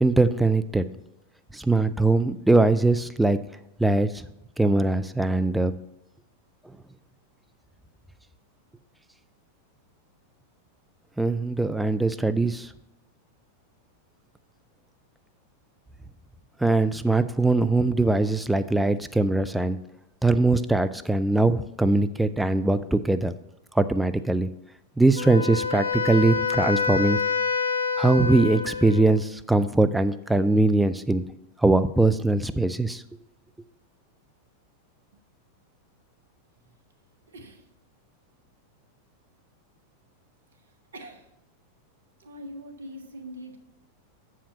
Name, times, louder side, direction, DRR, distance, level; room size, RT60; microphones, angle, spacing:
voice 1, 0.0-0.8 1.5-3.4 3.8-4.3 4.6-5.7 11.2-12.7 16.6-19.8 20.2-23.3 23.8-24.5 25.0-27.2 28.0-31.3 31.6-33.0, right 2 dB, 5° right, 11 dB, 0.4 m, -21 dB
Wind instrument woodwind instrument, 25.2-29.2, left 5 dB, 70° left, 0.5 m, -27 dB
voice 2, 37.3-37.7 40.9-41.3 42.2-43.6, equal, 70° right, 5 dB, 1.1 m, -42 dB
7.1 x 4.9 x 6.8 m, 0.85 s
figure-of-eight pair, 90°, 0 cm